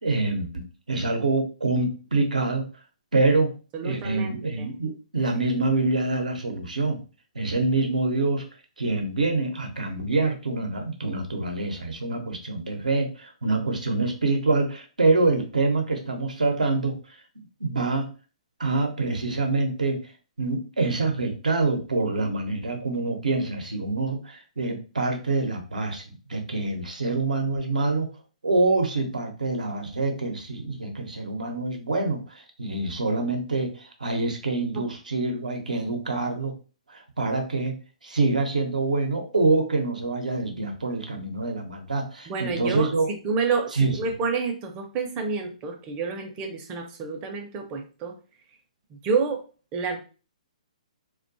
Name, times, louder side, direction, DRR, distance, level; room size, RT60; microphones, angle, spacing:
voice 1, 0.0-2.7 3.1-3.5 3.8-7.0 7.3-8.4 8.8-17.2 17.6-18.1 18.6-20.0 20.4-28.1 28.4-36.5 36.9-37.7 38.0-43.1 43.7-44.1, right 3 dB, 90° right, 4 dB, 0.6 m, -26 dB
voice 2, 3.7-4.7 42.3-48.2 48.9-49.5 49.7-50.0, right 4 dB, 30° right, 5 dB, 0.5 m, -29 dB
2.4 x 2.2 x 2.5 m, 0.35 s
hypercardioid pair, 135°, 4 cm